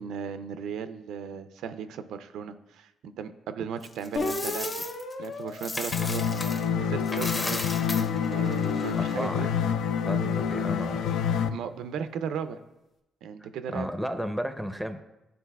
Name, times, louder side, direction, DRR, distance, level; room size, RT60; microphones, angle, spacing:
voice 1, 0.0-4.7 5.2-6.2 6.8-7.6 8.3-9.5 11.5-12.6 13.2-13.9, right 7 dB, 80° right, 10 dB, 0.4 m, -36 dB
Coin (dropping), 3.8-6.7 7.0-9.3, left 2 dB, 25° left, 0.9 m, -36 dB
sound 1, 4.2-6.8 7.4-9.9, left 3 dB, 60° left, 0.9 m, -37 dB
sound 2, 5.9-11.5, left 7 dB, 80° left, 0.3 m, -27 dB
voice 2, 9.0-9.7 10.1-11.2 13.7-15.0, equal, ahead, 8 dB, 0.6 m, -33 dB
11.0 x 4.0 x 2.3 m, 0.95 s
cardioid pair, 90°, 0 cm